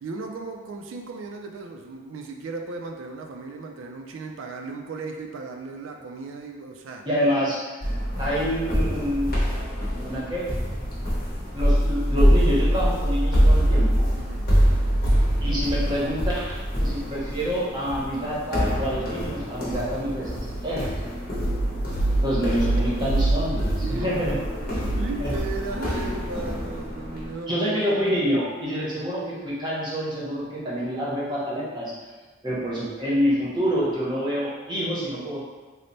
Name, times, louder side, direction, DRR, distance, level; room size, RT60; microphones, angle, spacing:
voice 1, 0.0-7.1 14.2-14.5 22.0-22.1 22.5-23.1 23.8-28.0, right 3 dB, 75° right, 3 dB, 0.3 m, -36 dB
voice 2, 7.0-7.9 8.2-9.4 10.0-10.5 11.5-14.1 15.4-16.5 16.8-20.3 20.6-20.9 22.2-24.3 25.2-25.3 27.5-31.9 32.4-35.4, equal, 20° right, -7 dB, 0.7 m, -27 dB
sound 1, 7.8-27.3, equal, 45° left, 0.9 m, -24 dB
3.2 x 2.0 x 4.0 m, 1.3 s
head